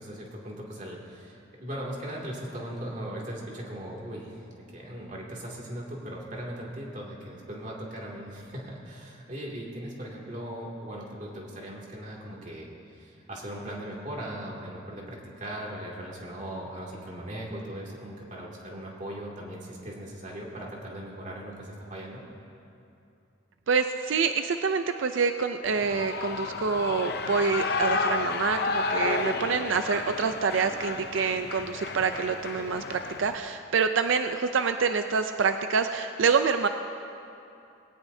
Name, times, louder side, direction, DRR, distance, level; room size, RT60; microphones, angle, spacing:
voice 1, 0.0-22.2, right 1 dB, 40° right, -3 dB, 2.5 m, -39 dB
voice 2, 23.7-36.7, right 5 dB, 90° right, 8 dB, 0.5 m, -26 dB
Shout / Cheering, 25.6-33.4, left 4 dB, 55° left, 0.7 m, -32 dB
20.0 x 17.5 x 2.7 m, 2.7 s
head